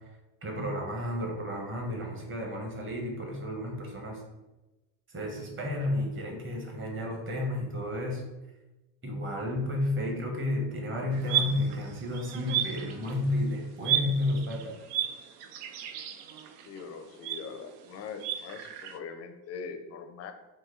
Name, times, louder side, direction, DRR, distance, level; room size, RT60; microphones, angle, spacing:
voice 1, 0.4-4.2 5.1-8.2 9.0-14.7, left 1 dB, 25° right, 0 dB, 1.0 m, -32 dB
sound 1, 11.1-13.4 13.8-19.0, right 9 dB, 90° right, 0.6 m, -33 dB
voice 2, 16.6-20.3, left 5 dB, 35° left, 7 dB, 0.4 m, -42 dB
4.3 x 2.7 x 3.7 m, 1.0 s
cardioid pair, 120°, 50 cm